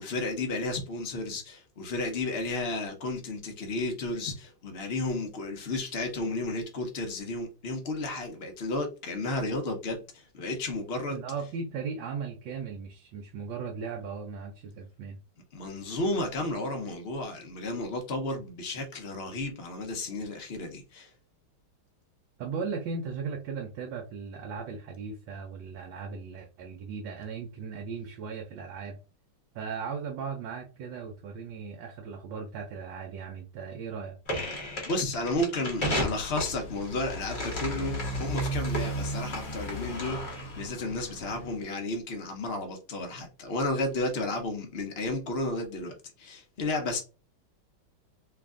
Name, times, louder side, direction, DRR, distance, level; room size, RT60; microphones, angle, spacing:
voice 1, 0.0-11.2 15.5-21.1 34.9-47.0, left 2 dB, 85° left, 0.5 m, -33 dB
voice 2, 11.1-15.2 22.4-29.0 29.5-34.2, right 5 dB, 75° right, 1.3 m, -37 dB
sound 1, 34.2-40.6, left 1 dB, 40° left, 0.8 m, -35 dB
Motorcycle, 35.6-41.6, right 1 dB, 55° left, 1.1 m, -36 dB
3.2 x 2.4 x 3.6 m
omnidirectional pair, 2.2 m